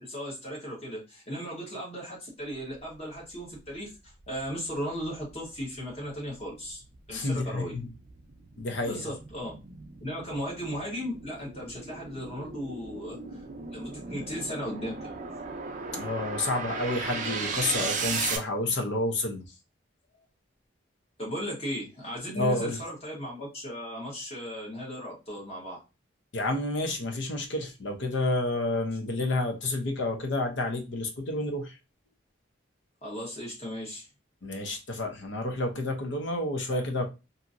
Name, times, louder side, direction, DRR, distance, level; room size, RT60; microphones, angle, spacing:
voice 1, 0.0-3.9 4.3-6.8 7.1-7.7 8.8-9.5 10.0-13.4 13.7-15.2 21.2-25.8 33.0-34.1, equal, 30° left, 1.2 m, -36 dB
sound 1, 3.7-3.8 4.2-18.4, right 4 dB, 40° right, 0.4 m, -37 dB
voice 2, 7.1-7.9 8.6-9.0 15.9-19.4 22.4-22.8 26.3-31.7 34.4-37.1, left 2 dB, 65° left, 0.6 m, -30 dB
2.8 x 2.6 x 2.5 m
head